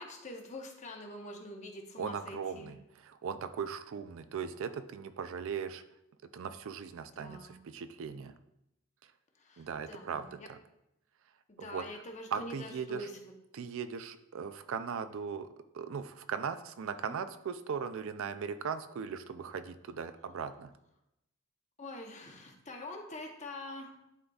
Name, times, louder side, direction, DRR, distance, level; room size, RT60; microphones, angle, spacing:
voice 1, 0.0-2.7 7.2-7.6 9.4-10.5 11.5-13.3 17.1-17.2 21.8-24.0, left 1 dB, 30° left, 2 dB, 0.8 m, -45 dB
voice 2, 2.0-2.8 3.0-5.8 6.3-8.3 9.6-10.6 11.6-11.8 12.3-13.1 13.5-15.5 15.7-20.7, right 6 dB, 60° right, 11 dB, 0.4 m, -38 dB
11.0 x 3.9 x 2.3 m, 0.85 s
head